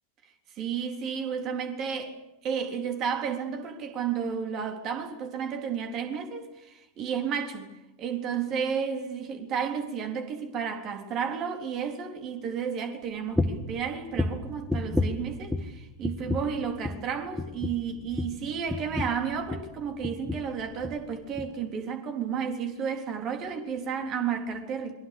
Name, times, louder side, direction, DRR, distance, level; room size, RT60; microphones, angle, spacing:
voice 1, 0.6-2.2 2.4-7.7 8.0-24.9, right 7 dB, 35° right, 3.8 m, -32 dB
sound 1, 13.4-13.7 14.1-15.8 16.0-16.6 16.8-17.1 17.4-19.7 20.0-20.5 20.8-21.0 21.4-21.5, left 2 dB, ahead, 1.9 m, -31 dB
27.5 x 23.5 x 6.9 m
figure-of-eight pair, 90°, 0 cm